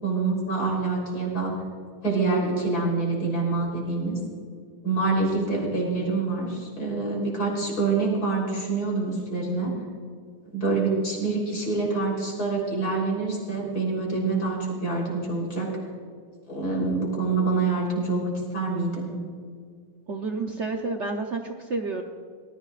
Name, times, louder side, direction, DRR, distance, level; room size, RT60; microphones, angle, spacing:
voice 1, 0.0-1.5 2.0-4.2 4.8-9.8 10.5-15.7 16.5-19.1, right 3 dB, 45° left, -2 dB, 4.3 m, -26 dB
voice 2, 20.1-22.0, right 3 dB, 75° right, 3 dB, 0.6 m, -30 dB
19.0 x 14.5 x 2.5 m, 2.1 s
omnidirectional pair, 2.3 m